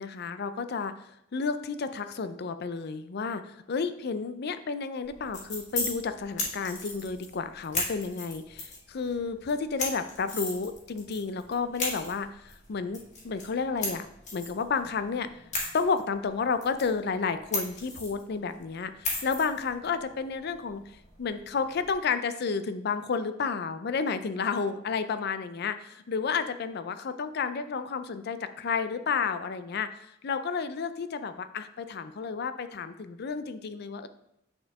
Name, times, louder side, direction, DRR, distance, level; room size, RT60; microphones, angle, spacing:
voice 1, 0.0-14.1 14.3-15.3 15.7-20.8 21.2-34.1, left 5 dB, 55° left, 11 dB, 0.5 m, -31 dB
sound 1, 5.0-21.9, left 2 dB, 40° left, 1.9 m, -38 dB
8.7 x 4.4 x 3.5 m, 0.80 s
head